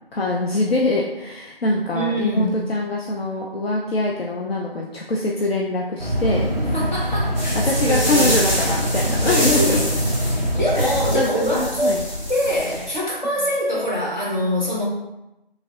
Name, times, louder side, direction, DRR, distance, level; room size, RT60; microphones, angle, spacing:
voice 1, 0.1-6.9 7.5-10.0 10.8-12.0, left 2 dB, 75° left, -2 dB, 0.5 m, -24 dB
voice 2, 1.9-2.7 6.6-8.4 9.2-9.9 10.3-12.0 12.3-14.8, equal, 50° left, -5 dB, 1.0 m, -24 dB
sound 1, 6.0-11.1, equal, 45° right, 0.5 m, -23 dB
sound 2, 7.3-13.0, equal, ahead, 1.0 m, -27 dB
3.2 x 2.6 x 2.3 m, 0.93 s
figure-of-eight pair, 175°, 30 cm